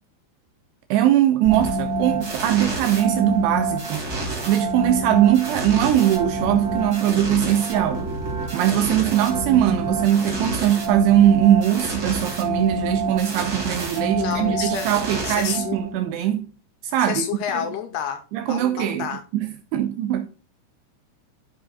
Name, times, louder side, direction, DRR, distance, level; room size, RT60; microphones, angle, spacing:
voice 1, 0.9-4.0 4.5-8.1 8.5-16.5 16.8-17.7 18.3-20.3, right 11 dB, 85° right, 2.5 m, -21 dB
sound 1, 1.4-16.1, right 2 dB, 30° right, 1.9 m, -27 dB
voice 2, 14.2-14.9 15.2-15.8 17.0-18.2 18.5-19.2, left 8 dB, 75° left, 2.6 m, -29 dB
13.0 x 5.8 x 2.3 m
omnidirectional pair, 5.2 m